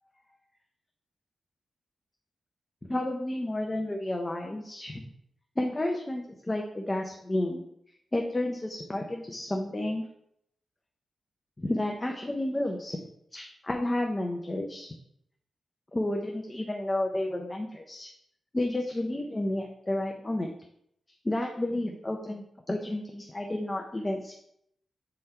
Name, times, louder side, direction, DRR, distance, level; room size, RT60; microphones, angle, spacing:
voice 1, 2.8-5.0 5.6-7.6 8.1-10.0 11.6-13.0 13.3-15.0 15.9-18.1 18.5-20.5 21.2-24.3, left 1 dB, 15° left, 2 dB, 0.5 m, -31 dB
7.9 x 3.8 x 4.3 m, 0.74 s
wide cardioid pair, 165°, 0 cm